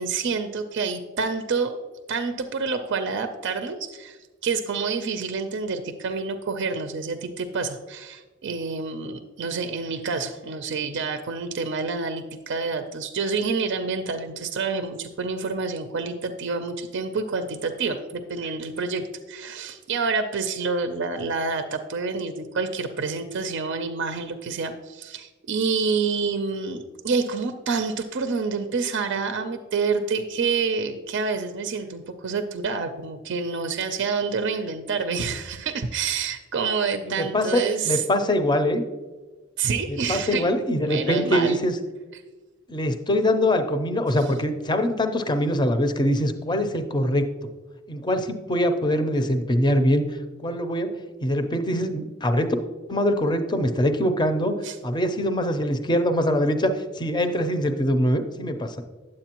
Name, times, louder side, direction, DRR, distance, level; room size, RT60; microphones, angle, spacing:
voice 1, 0.0-1.8 2.1-38.2 39.6-40.5 40.8-41.6 54.6-54.8, right 4 dB, 60° right, 8 dB, 0.5 m, -28 dB
voice 2, 37.0-38.8 39.9-41.7 42.7-47.3 47.9-50.0 50.4-50.9 51.2-52.6 52.9-54.5 54.8-58.8, equal, 20° left, 8 dB, 0.6 m, -23 dB
9.8 x 7.5 x 2.9 m, 1.3 s
head